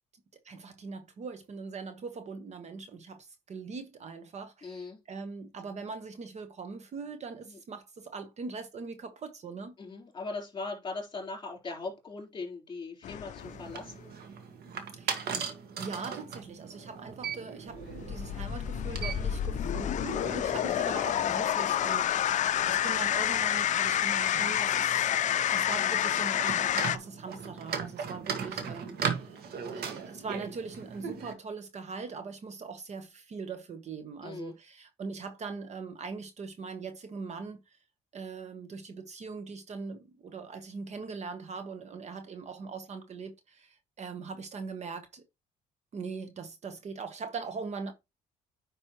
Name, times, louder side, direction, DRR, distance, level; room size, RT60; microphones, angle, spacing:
voice 1, 0.4-9.7 14.9-15.3 15.8-29.4 29.7-37.8 38.1-45.2 45.9-47.9, right 4 dB, 40° right, 1.2 m, -41 dB
voice 2, 4.6-5.0 7.5-7.6 9.8-14.1 34.2-34.5, left 3 dB, 25° left, 3.9 m, -39 dB
sound 1, 13.0-13.8 17.8-27.0, left 10 dB, 45° left, 0.5 m, -29 dB
sound 2, 13.4-31.3, right 6 dB, 65° right, 1.8 m, -39 dB
9.9 x 5.3 x 3.0 m
cardioid pair, 110°, 17 cm